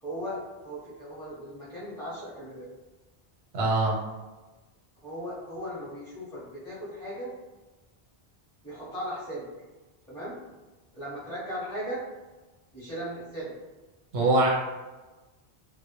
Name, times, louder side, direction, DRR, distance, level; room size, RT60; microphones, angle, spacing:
voice 1, 0.0-2.7 5.0-7.3 8.6-9.5 10.1-10.4 10.9-12.0 12.7-13.5, equal, 5° left, -9 dB, 0.6 m, -37 dB
voice 2, 3.5-4.0 14.1-14.5, right 2 dB, 90° right, -4 dB, 0.9 m, -22 dB
2.1 x 2.0 x 2.8 m, 1.2 s
omnidirectional pair, 1.1 m